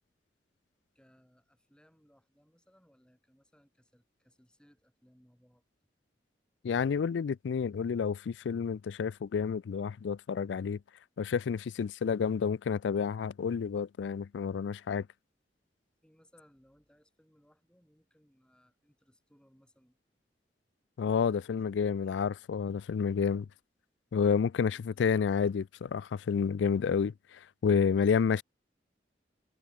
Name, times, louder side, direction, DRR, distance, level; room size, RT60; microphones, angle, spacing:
voice 1, 0.9-5.6 16.0-20.0 21.3-22.2 24.7-25.0, equal, 5° left, 7.5 m, -65 dB
voice 2, 6.6-10.8 11.2-15.1 21.0-23.5 24.1-28.4, left 6 dB, 85° left, 0.4 m, -30 dB
head